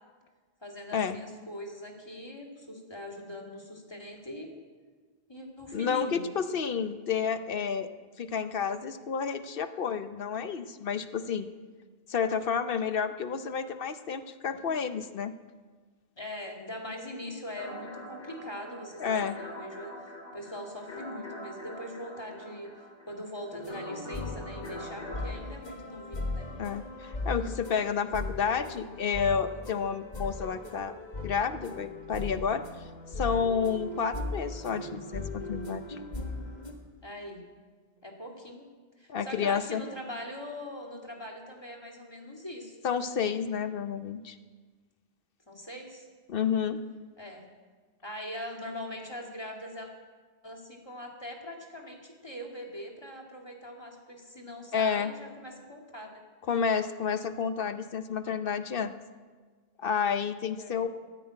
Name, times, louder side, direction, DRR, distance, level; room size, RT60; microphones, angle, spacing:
voice 1, 0.6-4.5 5.3-6.3 16.2-26.5 37.0-37.4 38.0-38.7 39.0-42.8 45.5-46.0 47.2-47.5 48.0-49.9 50.4-56.2 60.6-60.8, left 1 dB, 20° left, 0 dB, 2.2 m, -42 dB
voice 2, 5.7-7.9 8.2-11.5 12.1-15.3 19.0-19.3 26.6-31.0 31.2-32.6 33.2-36.0 39.1-39.8 42.8-44.4 46.3-46.8 54.7-55.1 56.5-58.9 59.8-60.9, left 6 dB, 60° left, 11 dB, 0.9 m, -30 dB
sound 1, 17.6-25.4, left 1 dB, 80° left, 2.6 m, -44 dB
sound 2, 23.5-36.7, left 2 dB, 40° left, 1.7 m, -38 dB
14.0 x 9.7 x 8.8 m, 1.4 s
omnidirectional pair, 1.2 m